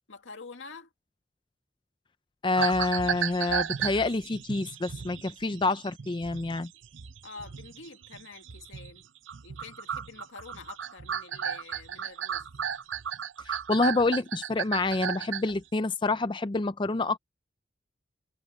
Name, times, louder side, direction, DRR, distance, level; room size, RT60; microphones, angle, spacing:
voice 1, 0.1-0.9 7.2-9.0 9.4-12.5, left 4 dB, 90° left, 2.2 m, -47 dB
voice 2, 2.4-6.7 13.4-17.2, left 3 dB, 25° left, 0.4 m, -27 dB
sound 1, 2.6-9.0 9.3-15.6, right 8 dB, 90° right, 0.7 m, -35 dB
head